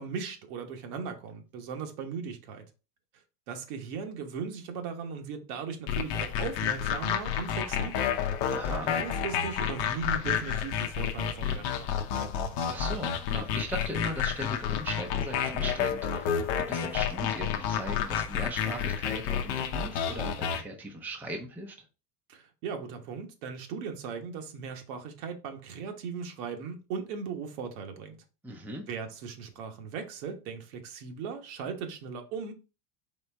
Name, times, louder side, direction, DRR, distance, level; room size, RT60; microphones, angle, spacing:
voice 1, 0.0-2.6 3.5-8.1 8.9-12.3 22.3-28.2 28.9-32.5, right 6 dB, 70° right, 1.2 m, -38 dB
sound 1, 5.9-20.6, left 8 dB, 55° left, 0.8 m, -30 dB
voice 2, 8.5-8.9 12.7-21.7 28.4-28.9, right 1 dB, 5° right, 0.6 m, -39 dB
4.3 x 3.3 x 3.3 m
supercardioid pair, 125°, 45 cm